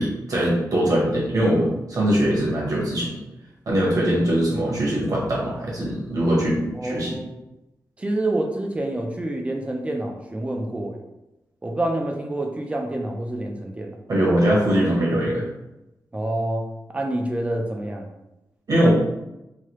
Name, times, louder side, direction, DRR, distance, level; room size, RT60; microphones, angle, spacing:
voice 1, 0.0-3.2 3.7-7.1 14.1-15.4 18.7-18.9, right 1 dB, 55° right, -4 dB, 1.0 m, -21 dB
voice 2, 6.7-7.3 8.0-11.0 11.6-14.0 16.1-18.1, right 1 dB, 15° right, 2 dB, 0.3 m, -27 dB
3.2 x 2.2 x 2.9 m, 0.93 s
wide cardioid pair, 175°, 7 cm